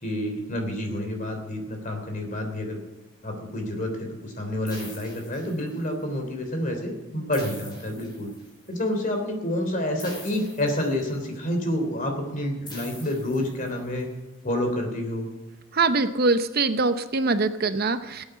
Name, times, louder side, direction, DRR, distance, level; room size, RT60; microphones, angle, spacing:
voice 1, 0.0-2.8 3.2-8.3 8.7-14.1 14.4-15.3, left 1 dB, 40° left, 3 dB, 3.3 m, -28 dB
sound 1, 4.7-6.0 7.3-8.7 10.0-11.4 12.7-14.0, left 2 dB, 20° left, 5.3 m, -44 dB
voice 2, 15.7-18.2, right 3 dB, 50° right, 10 dB, 0.8 m, -23 dB
17.0 x 9.0 x 8.0 m, 1.1 s
head